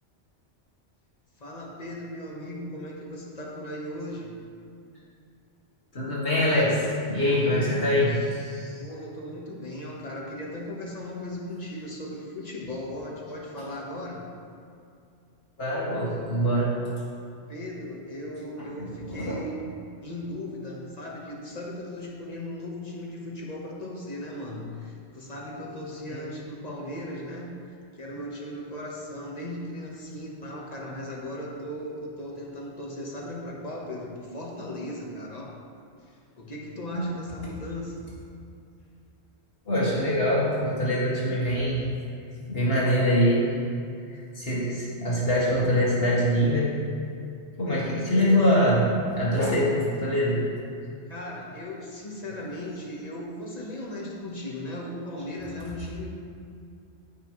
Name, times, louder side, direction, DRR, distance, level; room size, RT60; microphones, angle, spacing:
voice 1, 1.4-4.4 8.8-14.3 17.5-19.6 20.0-35.5 36.0-38.1 51.1-56.2, left 1 dB, 35° left, -3 dB, 1.4 m, -37 dB
voice 2, 5.9-8.8 15.6-16.8 19.0-19.4 26.1-26.2 36.9-37.0 39.7-41.8 42.5-43.5 44.1-46.7 47.6-48.9 49.2-50.4, equal, 55° left, -8 dB, 2.4 m, -24 dB
14.0 x 5.6 x 3.2 m, 2.4 s
omnidirectional pair, 1.2 m